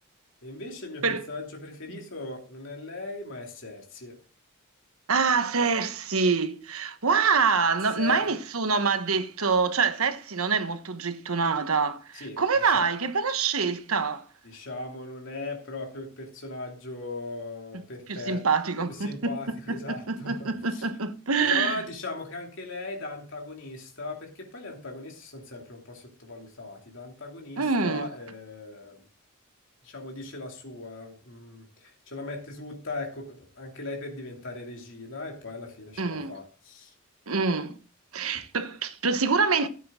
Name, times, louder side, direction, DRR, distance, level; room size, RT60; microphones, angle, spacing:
voice 1, 0.4-4.2 8.0-8.3 12.1-12.9 14.4-18.5 18.8-20.8 21.4-29.0 29.8-36.9, left 2 dB, 60° left, 2.8 m, -38 dB
voice 2, 5.1-14.2 18.1-19.4 19.7-21.8 27.6-28.1 36.0-36.4 37.3-37.8 38.1-39.7, right 5 dB, 85° right, 1.2 m, -26 dB
13.0 x 8.6 x 3.7 m
head